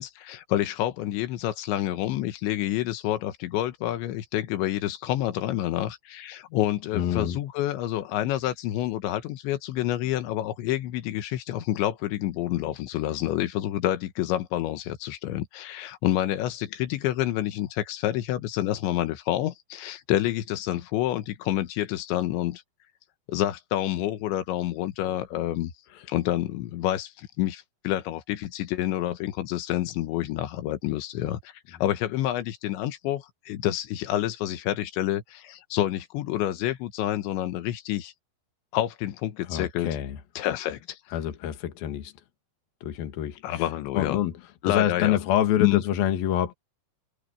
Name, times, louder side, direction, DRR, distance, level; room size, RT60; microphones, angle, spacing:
voice 1, 0.0-22.6 23.3-25.7 26.1-38.1 38.7-39.9 40.4-41.0 43.4-44.2 44.6-45.2 45.6-45.8, left 13 dB, 90° left, 3.6 m, -28 dB
voice 2, 6.9-7.4 25.9-26.0 39.5-40.2 41.1-42.1 42.8-43.6 43.9-44.3 44.6-46.5, left 11 dB, 60° left, 3.2 m, -26 dB
omnidirectional pair, 5.1 m